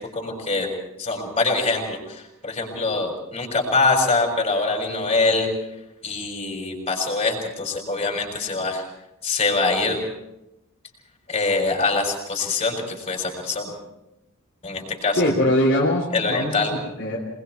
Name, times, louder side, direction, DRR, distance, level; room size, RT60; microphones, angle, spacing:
voice 1, 0.1-0.7 1.0-5.5 6.0-8.8 9.2-10.0 11.3-13.7 14.6-15.3 16.1-16.7, left 3 dB, 30° left, 1 dB, 6.6 m, -24 dB
voice 2, 15.1-17.2, left 1 dB, 50° left, -3 dB, 3.7 m, -22 dB
28.0 x 21.5 x 4.7 m, 0.90 s
head